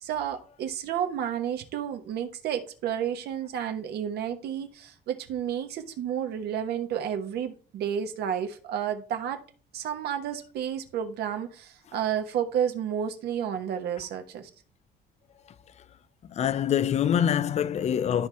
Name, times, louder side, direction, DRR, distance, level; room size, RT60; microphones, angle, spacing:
voice 1, 0.0-9.4 9.7-14.5, right 9 dB, 75° right, 1.3 m, -31 dB
voice 2, 16.3-18.3, left 9 dB, 40° left, 0.5 m, -25 dB
12.5 x 4.6 x 3.4 m
cardioid pair, 110°, 17 cm